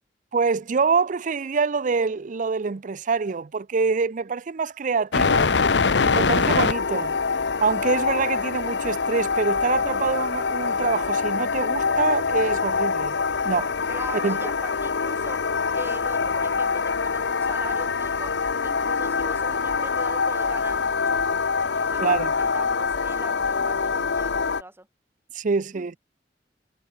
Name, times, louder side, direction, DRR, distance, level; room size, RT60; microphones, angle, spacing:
voice 1, 0.3-5.5 6.0-7.1 7.6-13.1 13.4-13.7 14.2-14.4 22.0-22.3 25.3-25.9, right 5 dB, 45° right, 0.5 m, -25 dB
sound 1, 5.1-24.6, left 5 dB, 90° left, 0.9 m, -24 dB
voice 2, 13.9-18.3 18.6-22.0 22.4-24.9 25.7-25.9, right 1 dB, 15° right, 5.3 m, -41 dB
head